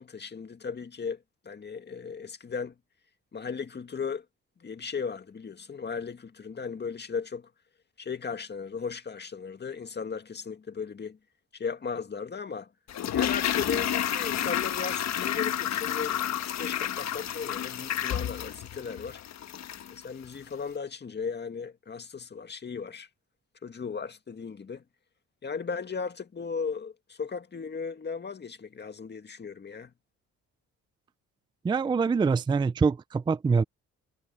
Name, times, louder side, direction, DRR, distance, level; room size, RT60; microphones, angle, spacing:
voice 1, 0.0-2.8 3.3-4.3 4.6-7.5 8.0-11.2 11.5-12.7 13.1-19.2 19.9-23.1 23.6-24.8 25.4-29.9, left 5 dB, 35° left, 2.0 m, -36 dB
Toilet flush, 12.9-20.0 20.2-20.3, left 10 dB, 65° left, 1.3 m, -30 dB
voice 2, 31.6-33.6, right 5 dB, 15° right, 0.4 m, -24 dB
cardioid pair, 90°, 30 cm